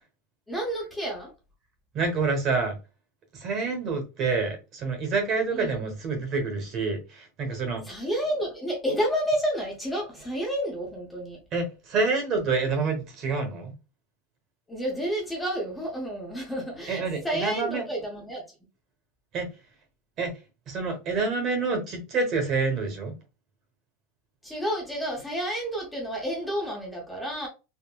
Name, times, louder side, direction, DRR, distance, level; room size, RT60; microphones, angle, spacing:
voice 1, 0.5-1.3 5.5-5.9 7.8-11.4 14.7-18.5 24.4-27.5, equal, 5° left, 0.7 m, -30 dB
voice 2, 1.9-2.8 3.3-7.8 11.5-13.7 16.9-17.8 19.3-19.5 20.2-20.3 20.7-23.2, right 4 dB, 35° right, 0.9 m, -27 dB
3.7 x 2.0 x 2.3 m
supercardioid pair, 150°, 0 cm